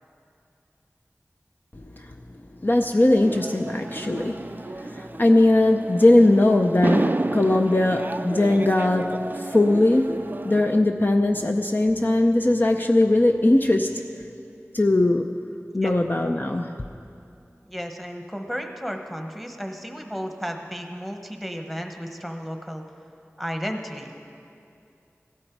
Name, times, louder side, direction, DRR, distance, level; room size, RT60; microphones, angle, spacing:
voice 1, 2.6-4.4 4.8-14.0 14.7-15.3 15.7-16.7, left 1 dB, 40° left, 3 dB, 0.5 m, -20 dB
sound 1, 3.2-10.8, right 2 dB, 40° right, 0.3 m, -31 dB
voice 2, 17.7-22.8 23.4-24.1, equal, ahead, 4 dB, 1.2 m, -33 dB
16.5 x 12.0 x 4.6 m, 2.5 s
wide cardioid pair, 45°, 5 cm